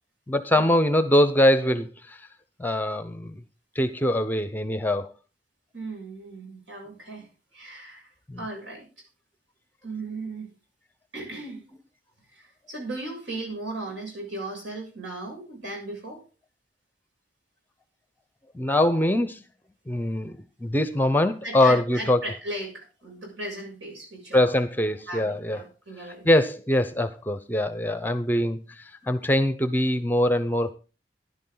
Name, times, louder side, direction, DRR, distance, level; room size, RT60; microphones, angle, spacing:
voice 1, 0.3-2.2 2.6-3.4 3.7-5.1 8.3-8.5 18.5-19.4 19.9-22.2 24.3-25.6 26.2-30.7, left 1 dB, 10° left, 12 dB, 0.7 m, -23 dB
voice 2, 5.7-8.1 8.4-8.9 9.8-10.5 11.1-11.6 12.3-16.2 21.4-24.6 25.1-26.3, right 2 dB, 75° right, 1 dB, 7.6 m, -37 dB
15.0 x 11.0 x 3.9 m, 0.33 s
head